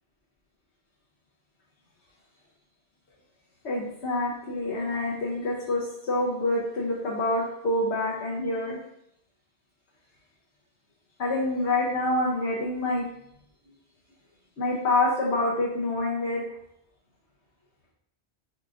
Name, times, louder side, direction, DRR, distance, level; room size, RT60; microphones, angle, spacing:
voice 1, 3.6-8.8 11.2-13.1 14.6-16.4, left 2 dB, 70° left, -4 dB, 1.1 m, -27 dB
5.7 x 2.4 x 3.8 m, 0.75 s
omnidirectional pair, 1.1 m